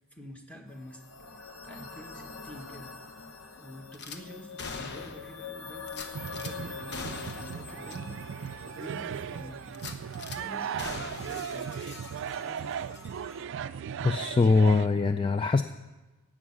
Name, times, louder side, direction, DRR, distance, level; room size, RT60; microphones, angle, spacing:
voice 1, 0.1-1.0 1.6-2.9 3.6-8.2 8.7-9.7 10.2-11.7 12.2-12.8, left 1 dB, 5° left, 2 dB, 1.3 m, -47 dB
sound 1, 0.7-13.5, left 4 dB, 85° left, 1.1 m, -45 dB
Gunshot gunfire / Glass, 3.9-4.2 4.6-5.3 5.9-6.5 6.9-7.6 7.9-8.0 8.5-8.6 9.7-10.4 10.8-12.6 12.9-13.1, left 4 dB, 55° left, 1.0 m, -41 dB
sound 2, 6.1-14.9, right 8 dB, 60° right, 0.3 m, -37 dB
voice 2, 14.0-15.6, left 3 dB, 25° left, 9 dB, 0.3 m, -22 dB
11.0 x 8.6 x 7.1 m, 1.2 s
head